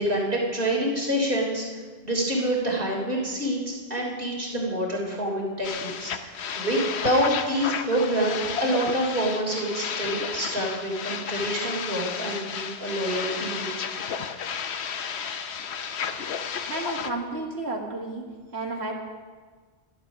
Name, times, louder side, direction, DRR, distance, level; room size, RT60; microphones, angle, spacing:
voice 1, 0.0-1.6 2.0-6.3 6.6-13.8, right 1 dB, 55° right, -2 dB, 3.7 m, -27 dB
sound 1, 5.6-17.1, left 7 dB, 85° left, 1.0 m, -32 dB
voice 2, 16.7-18.2 18.5-18.9, right 2 dB, 80° right, 0 dB, 2.2 m, -31 dB
12.5 x 11.5 x 6.1 m, 1.5 s
omnidirectional pair, 1.1 m